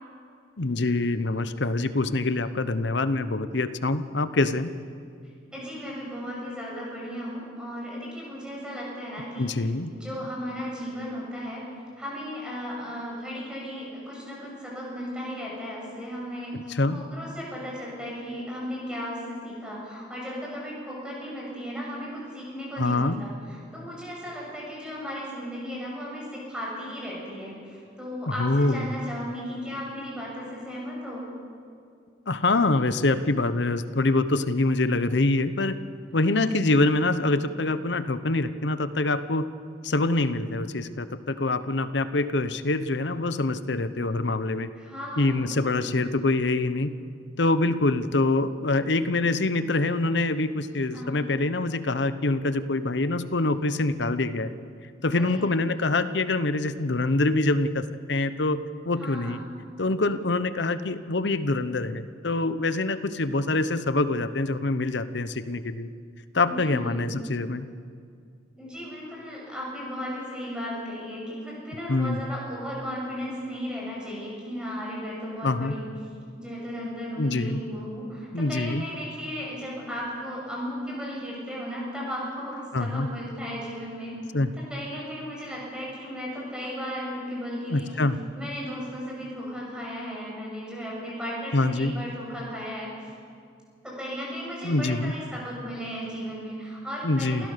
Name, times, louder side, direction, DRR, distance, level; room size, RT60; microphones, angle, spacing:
voice 1, 0.6-4.8 9.4-9.9 16.5-17.1 22.8-23.2 28.4-28.9 32.3-35.8 36.1-39.5 39.8-44.7 45.2-46.9 47.4-54.5 55.0-59.4 59.8-65.9 66.3-67.6 71.9-72.2 75.4-75.7 77.2-77.6 78.3-78.8 82.7-83.1 84.3-84.5 87.7-88.2 91.5-91.9 94.6-95.1 97.0-97.5, left 2 dB, 70° left, 12 dB, 0.9 m, -25 dB
voice 2, 5.5-11.6 12.0-31.2 36.3-36.7 44.8-45.9 50.9-51.2 55.1-55.5 59.0-59.4 66.4-67.1 68.6-75.9 76.4-84.1 84.5-88.0 88.4-93.1 93.8-97.5, equal, 5° right, -4 dB, 7.1 m, -35 dB
27.5 x 16.5 x 6.8 m, 2.3 s
head